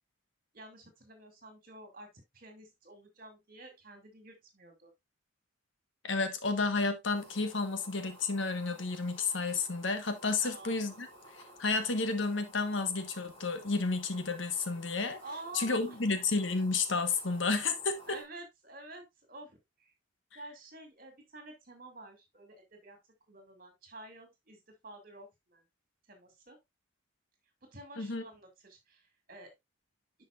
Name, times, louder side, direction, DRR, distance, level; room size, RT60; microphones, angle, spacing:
voice 1, 0.5-4.9 10.4-10.8 15.2-16.0 18.1-19.0 19.3-19.9 20.3-23.0 23.3-25.6 26.1-26.6 27.6-29.0 29.3-29.5, right 2 dB, 45° right, 2.6 m, -50 dB
voice 2, 6.0-11.1 11.6-15.2 15.5-18.2 28.0-28.2, left 3 dB, 70° left, 1.3 m, -31 dB
sound 1, 7.1-18.2, equal, 25° left, 3.1 m, -55 dB
10.5 x 5.5 x 2.4 m
head